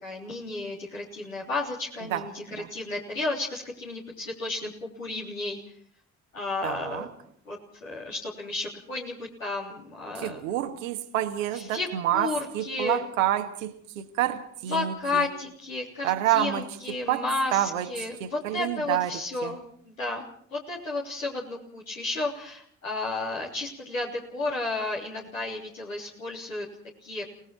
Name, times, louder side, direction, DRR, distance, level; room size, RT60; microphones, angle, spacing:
voice 1, 0.0-2.4 2.7-4.7 5.0-5.6 6.3-7.1 7.5-10.4 11.5-11.9 12.1-13.1 14.7-20.2 20.5-26.7 27.0-27.3, left 2 dB, 85° left, 3.5 m, -32 dB
voice 2, 2.0-2.7 6.6-7.1 10.1-15.3 16.0-19.6, right 12 dB, 75° right, 1.5 m, -29 dB
30.0 x 19.5 x 4.5 m
figure-of-eight pair, 45°, 39 cm